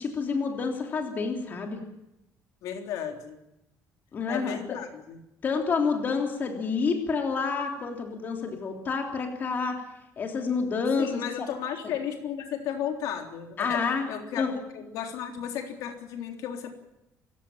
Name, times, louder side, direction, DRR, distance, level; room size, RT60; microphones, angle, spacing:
voice 1, 0.0-1.8 4.1-4.8 5.4-9.8 10.2-11.5 13.6-14.1 14.4-14.5, left 5 dB, 35° left, 3 dB, 3.3 m, -28 dB
voice 2, 2.6-3.4 4.3-5.2 11.0-16.8, left 9 dB, 80° left, 3 dB, 3.7 m, -34 dB
27.5 x 16.5 x 7.5 m, 0.88 s
cardioid pair, 175°, 6 cm